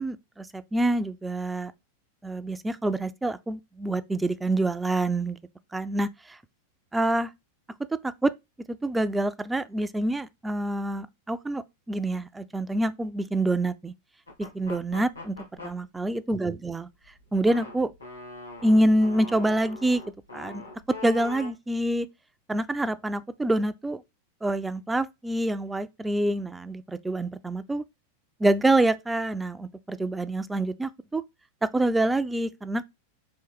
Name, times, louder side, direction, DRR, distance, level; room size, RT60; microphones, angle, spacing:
voice 1, 0.0-1.7 2.2-5.4 5.7-6.4 6.9-7.3 8.0-8.3 8.7-13.9 14.5-16.9 17.3-17.9 18.6-20.0 20.3-20.6 21.0-22.1 22.5-24.0 24.4-27.8 28.4-31.2 31.6-32.9, right 1 dB, 10° right, 0.3 m, -26 dB
sound 1, 14.3-15.7 16.9-21.5, left 3 dB, 85° left, 1.8 m, -42 dB
4.3 x 3.1 x 3.4 m
figure-of-eight pair, 90°, 0 cm